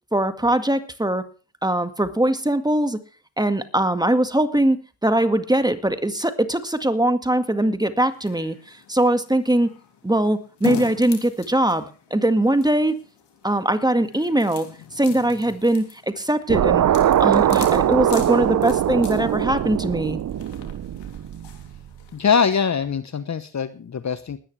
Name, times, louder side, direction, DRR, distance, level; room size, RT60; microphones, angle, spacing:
voice 1, 0.1-1.3 1.6-3.0 3.4-9.8 10.0-13.0 13.4-14.7 15.0-20.2, right 1 dB, 10° right, 9 dB, 1.9 m, -21 dB
sound 1, 8.0-22.6, left 8 dB, 70° left, 3.3 m, -40 dB
sound 2, 16.5-21.8, right 11 dB, 45° right, 0.6 m, -21 dB
voice 2, 22.1-24.4, left 6 dB, 40° left, 13 dB, 1.1 m, -22 dB
20.5 x 10.0 x 3.4 m, 0.36 s
supercardioid pair, 55°, 44 cm